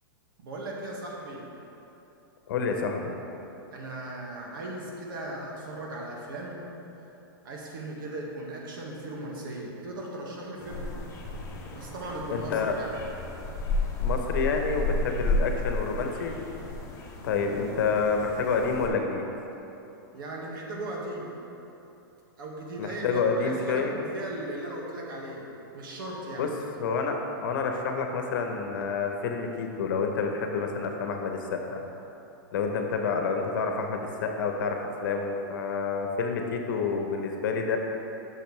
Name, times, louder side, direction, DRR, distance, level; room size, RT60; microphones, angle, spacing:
voice 1, 0.4-1.5 3.7-6.6 7.4-10.9 11.7-12.9 20.1-21.3 22.4-25.4 25.7-26.5, right 1 dB, 70° right, -2 dB, 1.8 m, -37 dB
voice 2, 2.5-3.1 12.3-12.7 14.0-16.4 17.2-19.3 22.8-24.0 26.4-26.5 26.8-31.8 32.5-37.8, left 5 dB, 65° left, 3 dB, 1.0 m, -28 dB
sound 1, 10.6-18.9, left 2 dB, 25° left, 1.1 m, -32 dB
10.5 x 6.4 x 3.3 m, 3.0 s
supercardioid pair, 150°, 12 cm